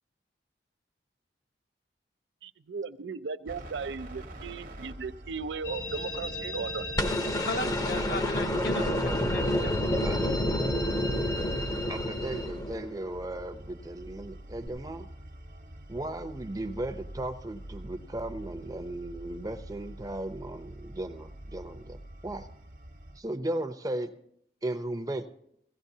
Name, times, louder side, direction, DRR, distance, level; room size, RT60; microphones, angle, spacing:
voice 1, 2.4-6.8, right 5 dB, 85° right, 13 dB, 0.5 m, -37 dB
sound 1, 3.4-23.2, right 1 dB, 50° right, 0.9 m, -46 dB
sound 2, 5.6-12.5, left 1 dB, 80° left, 2.9 m, -38 dB
sound 3, 7.0-13.1 14.7-14.8, left 1 dB, 20° left, 0.6 m, -29 dB
voice 2, 7.4-10.0, left 2 dB, 60° left, 6 dB, 1.1 m, -36 dB
voice 3, 8.5-9.2 10.0-10.3 11.9-15.1 15.9-22.5 23.2-24.1 24.6-25.3, right 1 dB, 20° right, 8 dB, 0.6 m, -36 dB
16.5 x 16.0 x 2.7 m, 0.71 s
head